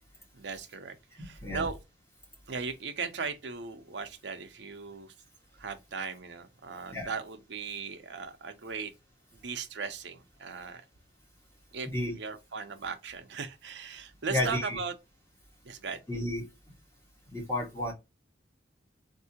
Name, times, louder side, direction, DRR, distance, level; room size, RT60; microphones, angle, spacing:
voice 1, 0.3-1.8 2.5-5.1 5.6-8.9 9.3-10.8 11.7-14.9 15.6-16.0, right 5 dB, 80° right, 0.7 m, -38 dB
voice 2, 1.2-1.6 6.9-7.1 11.9-12.1 14.3-14.8 16.1-16.4 17.3-17.9, left 1 dB, 15° left, 1.4 m, -32 dB
3.6 x 2.6 x 2.8 m
head